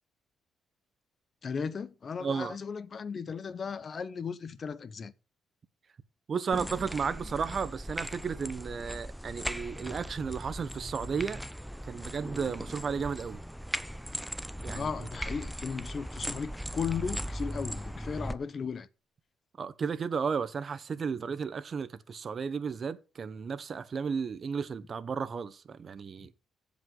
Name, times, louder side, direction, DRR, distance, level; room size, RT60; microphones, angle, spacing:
voice 1, 1.4-5.1 14.7-18.9, left 6 dB, 45° left, 0.8 m, -36 dB
voice 2, 2.2-2.6 6.3-11.4 11.9-13.4 14.6-14.9 19.6-26.3, right 6 dB, 45° right, 0.9 m, -33 dB
sound 1, 6.5-18.4, equal, ahead, 0.6 m, -38 dB
15.5 x 5.3 x 3.8 m
cardioid pair, 90°, 0 cm